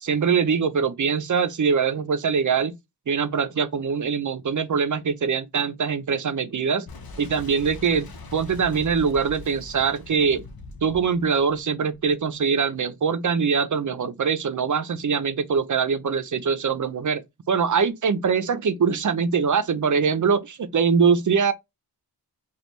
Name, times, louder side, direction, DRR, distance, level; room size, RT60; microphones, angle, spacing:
voice 1, 0.0-2.7 3.1-6.9 7.2-10.4 10.8-17.2 17.5-21.5, right 6 dB, 50° right, 0.7 m, -23 dB
Boom, 6.9-12.4, left 3 dB, 60° left, 1.1 m, -42 dB
5.1 x 2.5 x 3.1 m
wide cardioid pair, 95°, 40 cm